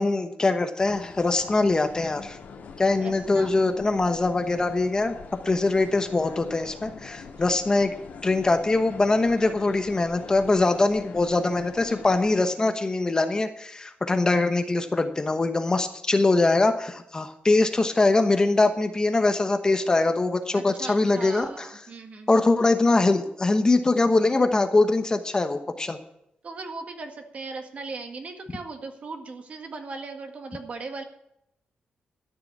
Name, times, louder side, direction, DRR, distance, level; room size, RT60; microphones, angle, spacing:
voice 1, 0.0-2.4 2.8-5.1 5.4-7.9 8.2-21.7 22.3-26.0, left 2 dB, 25° left, 8 dB, 1.0 m, -22 dB
sound 1, 0.8-12.4, left 5 dB, 70° left, 2.0 m, -44 dB
voice 2, 3.0-3.6 7.4-7.5 11.8-12.1 20.5-22.3 26.4-31.0, right 3 dB, 45° right, 5 dB, 1.8 m, -38 dB
13.0 x 6.9 x 8.3 m, 0.78 s
wide cardioid pair, 130°, 3 cm